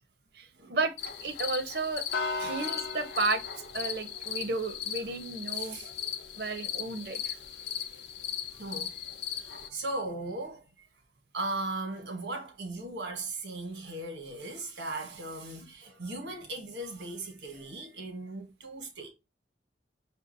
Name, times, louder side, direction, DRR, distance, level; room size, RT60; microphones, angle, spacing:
voice 1, 0.3-0.9 1.2-2.0 2.3-3.4 3.7-5.8 6.3-7.4, right 3 dB, 60° right, 0.6 m, -33 dB
sound 1, 1.0-9.7, left 7 dB, 70° left, 0.5 m, -37 dB
voice 2, 2.4-2.7 5.5-5.9 7.5-7.7 8.5-9.0 9.3-10.6 11.3-19.1, right 2 dB, 90° right, 1.3 m, -38 dB
5.5 x 2.7 x 2.6 m
head